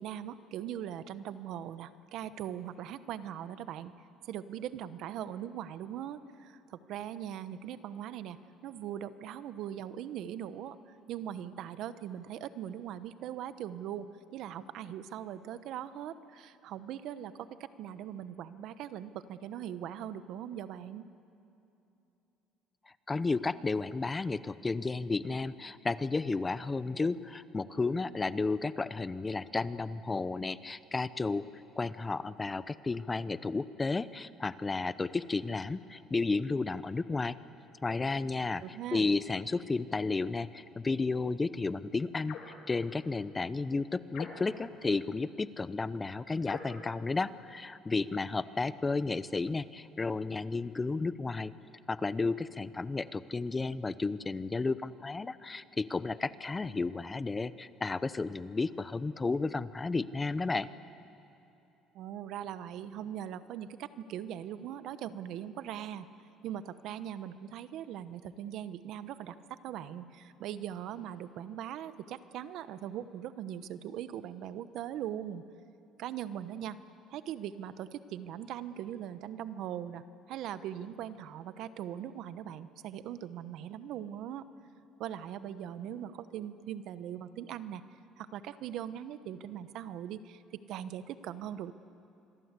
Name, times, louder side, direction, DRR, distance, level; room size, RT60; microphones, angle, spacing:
voice 1, 0.0-3.9 4.2-14.1 14.3-17.5 17.8-21.0 38.6-39.1 61.9-66.1 66.4-75.4 76.0-76.8 77.1-84.4 85.0-87.8 88.2-90.4 90.7-91.7, right 10 dB, 70° right, 13 dB, 1.0 m, -40 dB
voice 2, 23.1-31.4 31.8-37.4 37.8-42.4 42.7-51.5 51.9-60.7, left 3 dB, 20° left, 15 dB, 0.7 m, -32 dB
sound 1, 42.3-42.6 44.1-44.7 46.4-46.8, left 6 dB, 65° left, 3.3 m, -44 dB
26.5 x 22.5 x 8.2 m, 2.9 s
cardioid pair, 110°, 0 cm